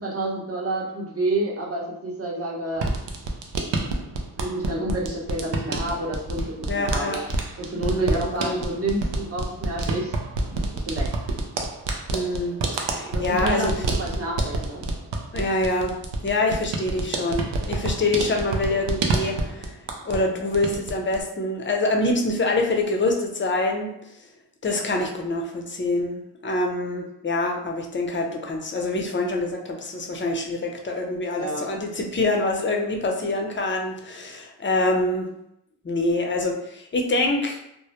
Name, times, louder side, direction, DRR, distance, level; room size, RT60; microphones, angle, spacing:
voice 1, 0.0-2.9 4.4-7.2 7.6-10.1 10.7-11.1 13.1-14.8 31.3-31.6, right 1 dB, 35° right, -3 dB, 0.8 m, -29 dB
sound 1, 2.7-20.3 20.5-21.2, right 2 dB, 80° right, 0.5 m, -28 dB
voice 2, 6.7-7.2 7.8-8.6 12.1-13.7 15.3-15.9 16.2-19.8 20.0-23.9 24.6-35.3 35.8-37.6, left 2 dB, 30° left, 2 dB, 0.5 m, -25 dB
2.1 x 2.0 x 2.8 m, 0.80 s
cardioid pair, 50°, 42 cm